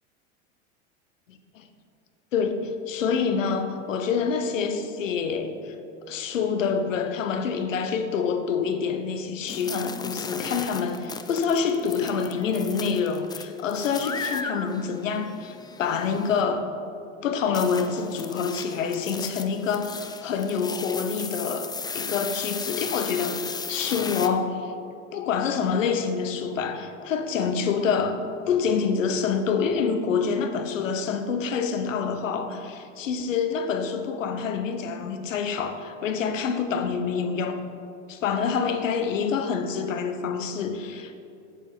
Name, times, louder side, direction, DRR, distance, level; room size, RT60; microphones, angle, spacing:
voice 1, 2.3-5.7 6.1-16.7 17.2-24.7 25.1-37.6 38.1-41.2, left 6 dB, 90° left, 8 dB, 1.0 m, -27 dB
sound 1, 9.5-16.4 17.5-24.3, left 5 dB, 10° left, 0.4 m, -36 dB
9.7 x 7.3 x 5.8 m, 2.5 s
hypercardioid pair, 95°, 37 cm